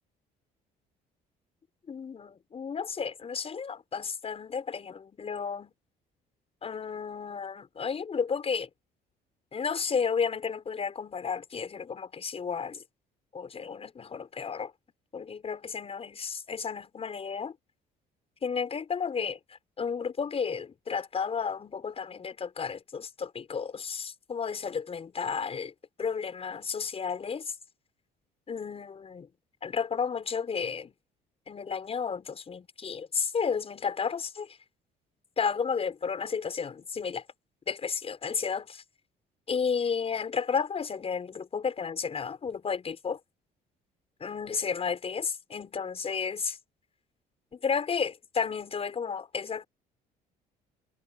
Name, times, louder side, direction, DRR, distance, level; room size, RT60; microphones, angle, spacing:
voice 1, 1.9-5.7 6.6-8.7 9.5-12.8 13.3-14.7 15.1-17.6 18.4-25.7 26.0-27.5 28.5-29.3 29.6-30.9 31.5-34.6 35.4-37.2 37.7-38.8 39.5-43.2 44.2-46.6 47.5-49.6, left 6 dB, 35° left, 7.0 m, -32 dB
cardioid pair, 110°, 17 cm